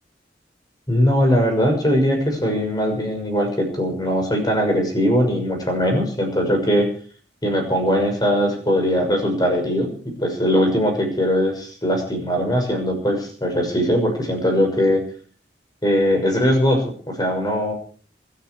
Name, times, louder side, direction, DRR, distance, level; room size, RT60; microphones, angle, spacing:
voice 1, 0.9-6.9 7.4-15.0 15.8-17.7, equal, 25° left, 3 dB, 6.4 m, -20 dB
27.0 x 10.5 x 4.8 m, 0.43 s
head